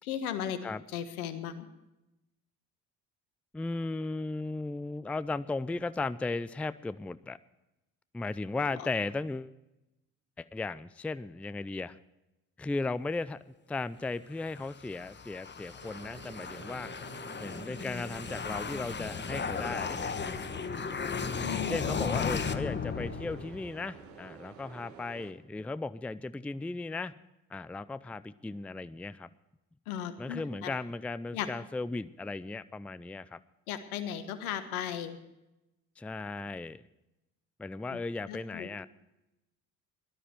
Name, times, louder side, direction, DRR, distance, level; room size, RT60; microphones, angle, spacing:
voice 1, 0.0-0.6 0.9-1.7 21.4-22.3 29.9-30.7 31.3-31.5 33.7-35.2 37.9-38.0 38.3-38.7, left 9 dB, 80° left, 11 dB, 1.4 m, -36 dB
voice 2, 3.5-7.4 8.1-9.5 10.4-12.0 12.6-16.9 17.4-20.3 21.5-27.1 27.5-29.3 30.2-33.4 36.0-36.8 37.6-38.9, left 3 dB, 5° left, 16 dB, 0.4 m, -36 dB
sound 1, 14.4-23.8, left 5 dB, 25° left, 1.2 m, -36 dB
sound 2, 15.8-25.3, right 7 dB, 80° right, 1.5 m, -50 dB
17.5 x 12.5 x 4.5 m, 0.94 s
hypercardioid pair, 55°, 43 cm